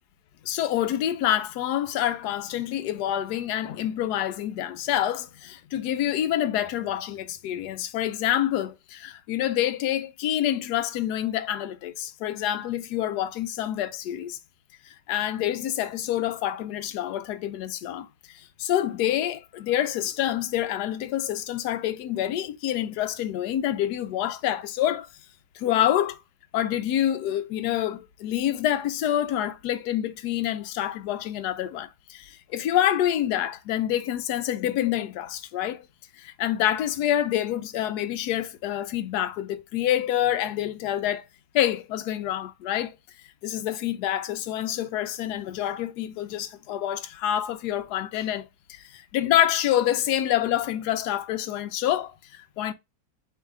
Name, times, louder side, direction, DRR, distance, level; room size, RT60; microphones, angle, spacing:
voice 1, 0.4-14.4 14.8-25.1 25.5-26.2 26.5-35.9 36.2-41.3 41.5-43.0 43.4-52.7, left 11 dB, 70° left, 1.0 m, -27 dB
4.6 x 3.2 x 3.6 m
omnidirectional pair, 2.0 m